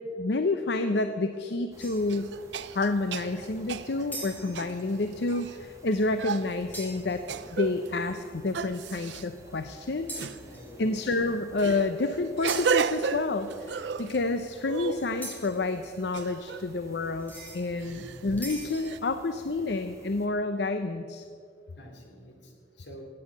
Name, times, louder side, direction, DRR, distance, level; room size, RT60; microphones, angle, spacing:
voice 1, 0.1-2.2 2.7-7.2 7.5-10.1 10.8-21.2, left 3 dB, 70° left, 9 dB, 0.6 m, -29 dB
sound 1, 1.3-1.4 2.1-5.6 6.2-6.6 7.3-7.9 8.5-9.3 10.2-10.4 11.6-14.2 14.6-15.5 16.1-16.7 17.8-18.3 18.8-19.0, right 6 dB, 85° right, 0.5 m, -33 dB
sound 2, 1.7-20.3, right 1 dB, 20° right, 1.5 m, -52 dB
sound 3, 1.8-2.2 4.1-4.8 6.7-7.3 10.1-10.8 12.5-12.9 15.2-15.6 17.2-17.6 18.4-19.0, equal, 10° left, 3.5 m, -41 dB
voice 2, 10.4-11.4 17.8-18.3 21.8-23.0, equal, 90° left, 2 dB, 2.7 m, -49 dB
16.5 x 8.6 x 7.3 m, 2.4 s
head